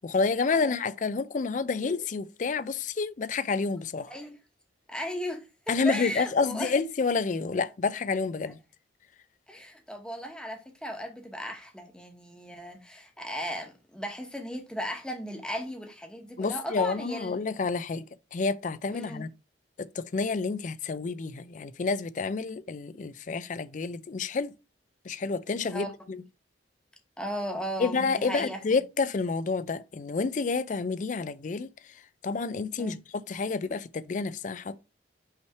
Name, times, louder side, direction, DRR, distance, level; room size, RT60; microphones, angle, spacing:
voice 1, 0.0-4.1 5.7-8.6 16.4-18.1 18.3-19.3 19.8-24.5 25.0-26.2 27.8-31.7 32.2-34.8, left 4 dB, 40° left, 0.4 m, -29 dB
voice 2, 4.1-4.4 4.9-6.7 9.5-17.4 18.9-19.3 25.6-25.9 27.2-28.8 32.8-33.0, equal, 5° left, 1.1 m, -36 dB
5.6 x 3.2 x 5.6 m
head